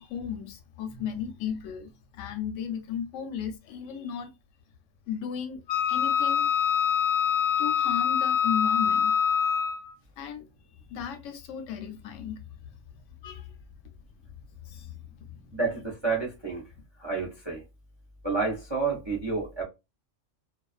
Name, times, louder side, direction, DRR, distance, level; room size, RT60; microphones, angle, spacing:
voice 1, 0.0-4.3 5.1-6.5 7.6-9.2 10.2-10.5 10.9-12.4 13.2-13.5 14.6-15.5, left 8 dB, 85° left, 0.9 m, -35 dB
Wind instrument woodwind instrument, 5.7-9.9, left 8 dB, 55° left, 0.7 m, -25 dB
voice 2, 15.5-16.6 17.0-17.6 18.2-19.6, right 4 dB, 35° right, 0.5 m, -29 dB
2.4 x 2.3 x 2.3 m
omnidirectional pair, 1.3 m